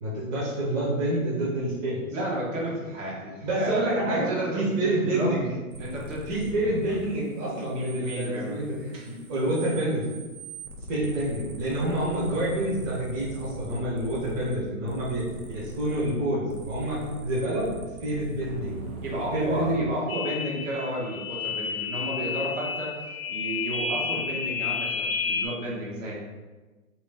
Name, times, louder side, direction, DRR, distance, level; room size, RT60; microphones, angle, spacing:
voice 1, 0.0-2.0 3.4-5.5 6.3-10.1 10.9-17.7 18.0-18.8 19.3-19.9, right 1 dB, 30° right, -7 dB, 1.0 m, -28 dB
voice 2, 2.1-5.3 5.8-6.3 7.7-8.6 8.9-9.1 19.0-22.9 23.3-26.1, right 1 dB, 55° right, -4 dB, 1.3 m, -32 dB
sound 1, 5.7-7.0 7.2-14.5 14.9-16.2 16.5-19.8, right 2 dB, 85° right, 0.8 m, -41 dB
sound 2, 20.1-25.5, left 5 dB, 45° left, 0.5 m, -31 dB
3.2 x 3.1 x 3.5 m, 1.2 s
hypercardioid pair, 135°, 43 cm